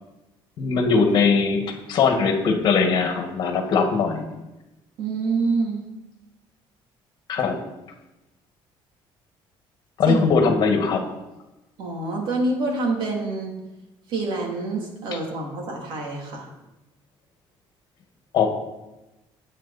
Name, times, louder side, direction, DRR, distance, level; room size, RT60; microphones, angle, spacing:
voice 1, 0.6-1.6 1.9-4.2 7.3-7.6 10.0-11.0 18.3-18.5, left 5 dB, 50° left, 4 dB, 2.0 m, -20 dB
voice 2, 5.0-5.8 10.0-10.2 11.8-13.5 14.1-16.5, right 3 dB, 60° right, 0 dB, 3.3 m, -26 dB
18.0 x 8.9 x 4.3 m, 1.0 s
cardioid pair, 175°, 10 cm